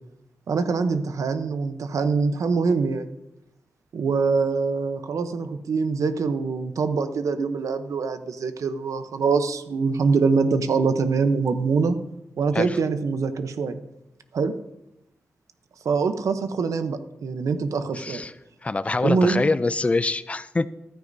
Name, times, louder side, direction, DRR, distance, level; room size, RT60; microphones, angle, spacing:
voice 1, 0.5-3.1 3.9-12.0 12.4-13.8 14.3-14.5 15.8-18.2 19.0-19.5, right 4 dB, 85° right, 10 dB, 0.8 m, -24 dB
voice 2, 17.9-18.3 18.6-20.7, left 3 dB, 25° left, 14 dB, 0.4 m, -24 dB
14.5 x 13.0 x 2.7 m, 0.88 s
wide cardioid pair, 145°, 5 cm